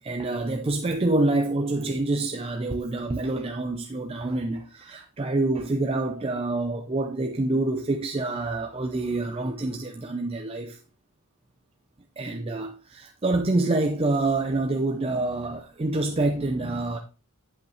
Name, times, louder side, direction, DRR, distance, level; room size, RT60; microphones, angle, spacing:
voice 1, 0.0-10.8 12.2-17.0, right 2 dB, 25° right, 0.5 m, -27 dB
8.1 x 7.9 x 2.9 m
head